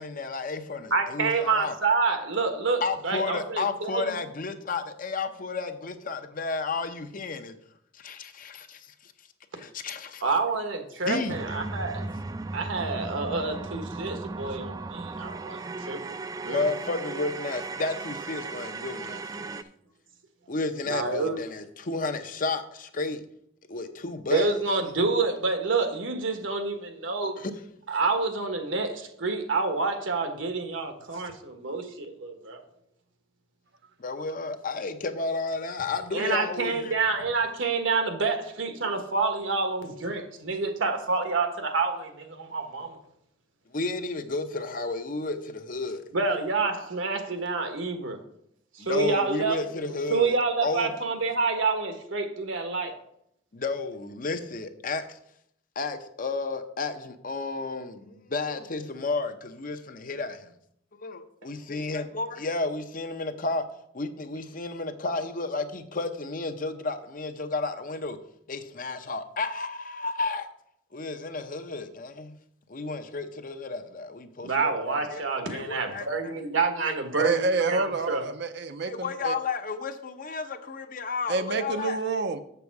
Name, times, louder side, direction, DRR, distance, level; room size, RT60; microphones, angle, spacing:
voice 1, 0.0-1.7 2.8-7.6 7.9-9.1 9.6-10.2 11.1-11.4 16.4-19.6 20.5-23.2 23.7-24.5 27.4-27.5 34.0-37.0 43.7-46.0 48.8-50.4 50.6-50.9 53.5-55.2 55.8-60.5 61.0-63.6 63.9-68.2 68.5-70.5 70.9-72.3 72.7-75.2 75.5-76.1 76.9-77.0 78.8-82.0, left 3 dB, 45° left, 0.7 m, -32 dB
voice 2, 0.9-4.2 10.2-12.1 12.5-15.6 15.9-16.0 16.4-16.7 20.8-21.4 24.3-27.3 27.9-32.6 36.1-43.0 46.1-48.2 48.7-49.6 50.1-52.9 74.4-78.2, right 4 dB, 75° right, 1.3 m, -28 dB
sound 1, 11.3-19.6, right 3 dB, 20° right, 0.3 m, -36 dB
voice 3, 77.2-79.3 81.3-82.4, right 3 dB, 60° right, 0.6 m, -28 dB
7.0 x 6.9 x 4.7 m
head